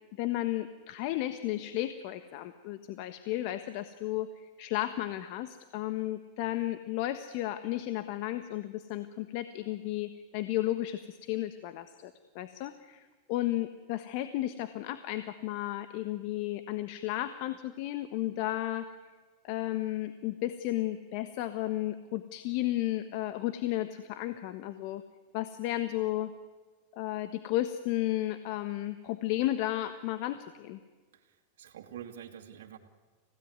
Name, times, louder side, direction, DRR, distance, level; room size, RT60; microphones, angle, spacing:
voice 1, 0.2-18.9 19.4-25.0 25.3-26.3 26.9-30.8, left 14 dB, 60° left, 10 dB, 1.3 m, -33 dB
voice 2, 31.1-32.8, right 9 dB, 80° right, 2 dB, 2.3 m, -47 dB
28.0 x 17.0 x 9.5 m, 1.4 s
hypercardioid pair, 115°, 0 cm